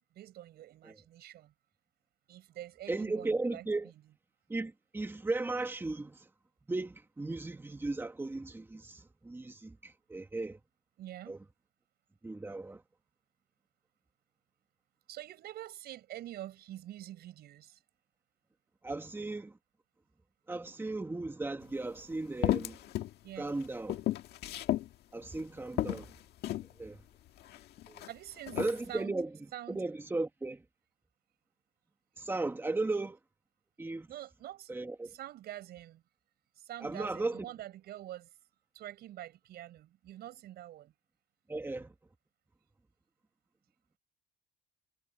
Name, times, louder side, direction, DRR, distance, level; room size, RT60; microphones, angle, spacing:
voice 1, 0.1-1.5 2.3-3.9 11.0-11.4 15.1-17.8 23.2-23.5 28.0-28.6 28.9-29.2 29.5-29.8 34.1-34.7 35.0-36.0 36.6-38.3 38.7-40.9, right 13 dB, 70° right, 7.2 m, -46 dB
voice 2, 2.9-3.9 4.5-6.3 6.7-10.6 11.3-11.4 12.2-12.8 18.8-19.6 20.5-22.8 23.4-24.0 25.1-26.1 26.8-27.0 27.9-28.1 28.6-29.3 29.7-30.6 32.2-33.2 33.8-34.1 34.7-35.1 36.8-37.4 41.5-41.9, right 2 dB, 15° right, 2.2 m, -36 dB
sound 1, 21.6-21.7 22.4-23.1 23.5-24.9 25.4-25.5 25.8-26.7 27.4-28.1 28.5-28.8, left 14 dB, 75° left, 1.8 m, -33 dB
cardioid pair, 110°, 17 cm